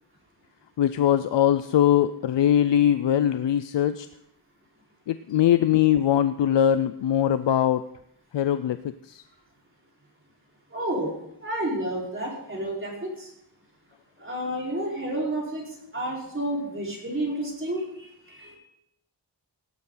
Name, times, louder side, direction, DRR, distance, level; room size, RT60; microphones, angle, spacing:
voice 1, 0.8-4.1 5.1-7.9 8.3-8.8 9.0-9.2, left 10 dB, 80° left, 12 dB, 0.6 m, -21 dB
voice 2, 10.7-11.1 11.4-13.3 14.2-15.6 15.9-18.6, right 1 dB, 30° right, -3 dB, 4.6 m, -30 dB
17.5 x 11.5 x 3.9 m, 0.78 s
wide cardioid pair, 120°, 42 cm